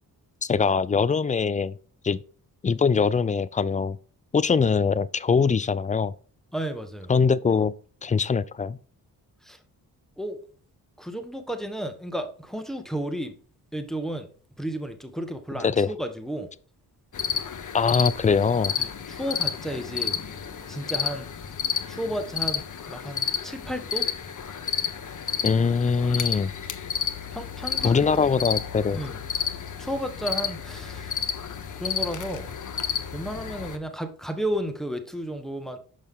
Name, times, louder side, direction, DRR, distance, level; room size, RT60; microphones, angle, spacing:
voice 1, 0.4-1.8 2.0-2.2 2.6-4.0 4.3-6.1 7.1-7.7 8.0-8.8 15.6-15.9 17.7-18.7 25.4-26.5 27.8-29.0, left 5 dB, 20° left, 0.3 m, -22 dB
voice 2, 6.5-7.1 9.4-9.6 10.2-10.4 11.0-13.3 13.7-14.3 14.6-16.5 18.8-20.2 20.7-21.3 21.9-24.1 27.3-28.3 28.9-29.2 29.8-31.3 31.8-32.5 33.1-35.8, equal, ahead, 1.2 m, -33 dB
sound 1, 17.1-33.8, left 7 dB, 50° left, 0.9 m, -31 dB
6.5 x 5.3 x 3.7 m
cardioid pair, 50°, 41 cm